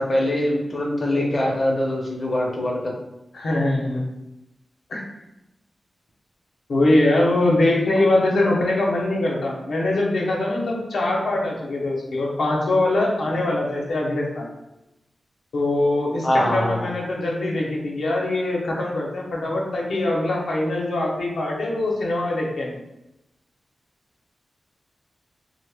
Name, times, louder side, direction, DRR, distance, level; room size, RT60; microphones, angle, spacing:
voice 1, 0.0-2.8 16.2-16.9, left 1 dB, 30° left, -2 dB, 0.5 m, -23 dB
voice 2, 3.3-4.1 4.9-5.0 6.7-14.5 15.5-22.8, left 2 dB, 80° left, -2 dB, 0.6 m, -22 dB
2.7 x 2.0 x 3.3 m, 0.91 s
wide cardioid pair, 130°, 0 cm